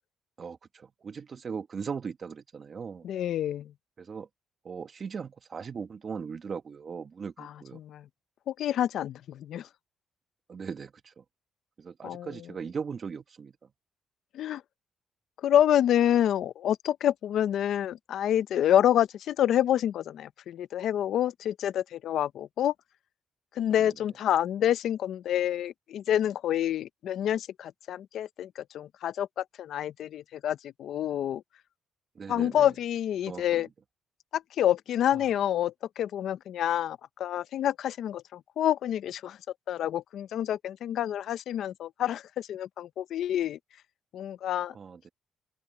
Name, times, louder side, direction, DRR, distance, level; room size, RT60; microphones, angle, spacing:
voice 1, 0.4-3.1 4.0-4.3 4.6-7.8 10.5-11.2 11.8-13.5 23.8-23.9 32.1-32.7 33.3-33.6 44.7-45.1, right 6 dB, 45° right, 1.2 m, -39 dB
voice 2, 3.0-3.7 7.4-8.0 8.5-9.7 12.0-12.5 14.3-14.6 15.4-22.7 23.6-31.4 32.3-33.7 34.3-39.4 39.7-43.6 44.1-44.7, left 11 dB, 75° left, 0.6 m, -28 dB
open air
cardioid pair, 90°, 0 cm